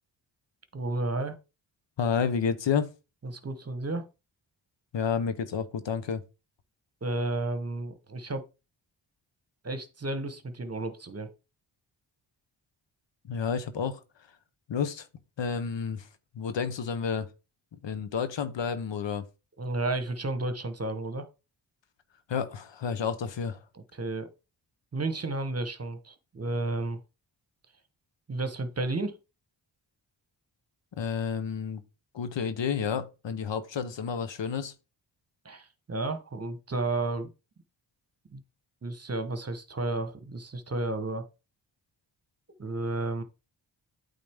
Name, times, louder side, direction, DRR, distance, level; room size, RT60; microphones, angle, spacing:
voice 1, 0.7-1.4 3.2-4.1 7.0-8.5 9.6-11.3 19.6-21.3 23.7-24.3 24.9-27.0 28.3-29.2 35.4-37.3 38.3-38.4 38.8-41.3 42.6-43.2, right 2 dB, 30° right, 1.1 m, -32 dB
voice 2, 2.0-2.9 4.9-6.2 13.3-14.0 14.7-15.1 15.4-16.1 16.3-17.3 17.8-19.2 22.3-23.6 31.0-31.8 32.1-34.7, left 6 dB, 70° left, 1.0 m, -30 dB
8.5 x 3.8 x 3.5 m
cardioid pair, 55°, 46 cm